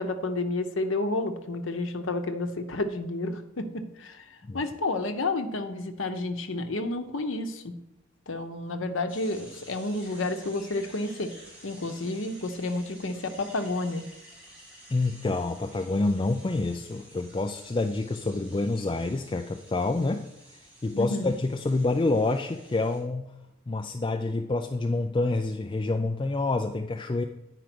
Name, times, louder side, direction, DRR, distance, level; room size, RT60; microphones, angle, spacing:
voice 1, 0.0-7.7 8.3-11.3 11.6-14.0 20.9-21.3, left 2 dB, 75° left, 8 dB, 0.9 m, -30 dB
sound 1, 9.1-23.0, right 1 dB, 5° right, 2.4 m, -51 dB
voice 2, 14.9-20.2 20.8-23.3 23.7-27.2, left 2 dB, 25° left, 5 dB, 0.4 m, -27 dB
9.2 x 4.9 x 6.0 m, 0.86 s
head